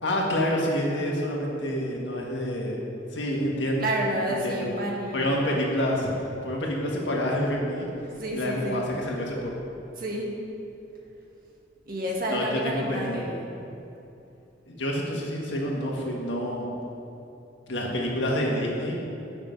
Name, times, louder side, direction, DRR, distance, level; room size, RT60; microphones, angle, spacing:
voice 1, 0.0-2.8 3.1-3.9 4.3-4.6 5.1-6.1 6.4-7.9 8.3-9.5 12.3-13.3 14.7-16.7 17.7-19.0, equal, 75° left, -2 dB, 1.6 m, -28 dB
voice 2, 3.8-5.3 8.2-8.8 10.0-10.3 11.8-13.4, right 1 dB, 50° right, -2 dB, 1.6 m, -29 dB
9.5 x 6.2 x 5.2 m, 2.9 s
head